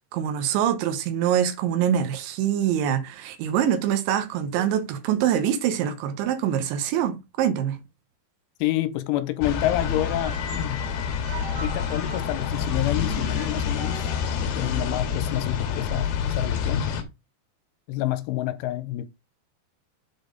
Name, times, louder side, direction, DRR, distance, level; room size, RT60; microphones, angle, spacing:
voice 1, 0.1-7.8, right 9 dB, 80° right, 3.2 m, -24 dB
voice 2, 8.6-10.8 11.6-14.1 14.4-16.8 17.9-19.1, left 15 dB, 85° left, 3.1 m, -28 dB
sound 1, 9.4-17.0, left 6 dB, 65° left, 2.7 m, -27 dB
sound 2, 9.8-14.8, right 3 dB, 45° right, 2.7 m, -42 dB
8.2 x 4.3 x 5.2 m
omnidirectional pair, 5.7 m